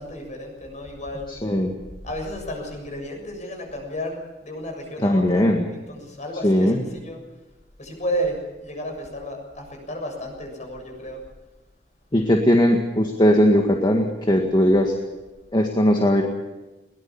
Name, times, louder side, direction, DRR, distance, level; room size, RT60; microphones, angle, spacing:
voice 1, 0.0-1.3 2.0-7.2 7.8-11.2, equal, 45° left, 3 dB, 7.1 m, -32 dB
voice 2, 1.3-1.7 5.0-5.6 6.4-6.8 12.1-14.9 15.5-16.2, equal, 25° left, 2 dB, 1.8 m, -19 dB
21.5 x 19.5 x 7.1 m, 1.1 s
head